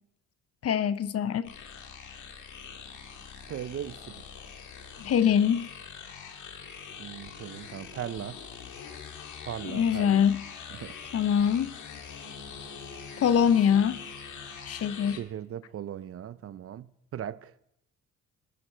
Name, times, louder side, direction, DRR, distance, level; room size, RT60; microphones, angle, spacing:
voice 1, 0.6-1.5 5.0-5.7 9.7-10.4 11.1-11.7 13.2-14.0 14.7-15.2, left 8 dB, 50° left, 0.7 m, -23 dB
sound 1, 1.4-15.2, left 6 dB, 80° left, 1.7 m, -43 dB
voice 2, 3.5-4.2 7.0-8.4 9.4-10.3 10.7-11.0 15.1-17.5, right 10 dB, 50° right, 0.6 m, -38 dB
14.5 x 10.0 x 4.4 m
cardioid pair, 90°, 30 cm